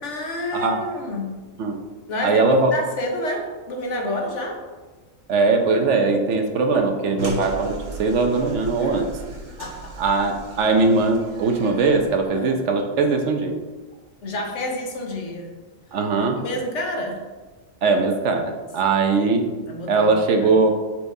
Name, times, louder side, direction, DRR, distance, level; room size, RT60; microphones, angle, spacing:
voice 1, 0.0-1.4 2.1-4.6 8.8-9.0 9.6-10.0 12.3-12.6 14.2-15.5 16.3-17.3 19.7-20.5, left 1 dB, 65° left, 2 dB, 1.2 m, -29 dB
voice 2, 2.2-2.7 5.3-9.2 10.0-13.6 15.9-16.4 17.8-19.5 19.9-20.7, right 3 dB, 65° right, 4 dB, 0.9 m, -20 dB
sound 1, 7.2-12.3, right 1 dB, 45° right, 1.2 m, -36 dB
8.3 x 4.6 x 2.7 m, 1.3 s
omnidirectional pair, 1.4 m